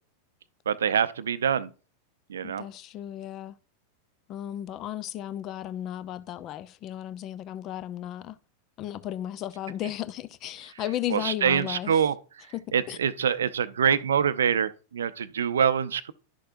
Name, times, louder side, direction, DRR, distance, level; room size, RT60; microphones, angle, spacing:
voice 1, 0.7-1.7 2.3-2.7 11.1-12.1 12.7-16.1, right 8 dB, 65° right, 0.6 m, -25 dB
voice 2, 2.4-3.5 4.3-8.4 8.8-12.0 12.5-12.6 12.9-13.0, left 12 dB, 35° left, 0.6 m, -35 dB
11.5 x 6.5 x 2.6 m
figure-of-eight pair, 90°, 0 cm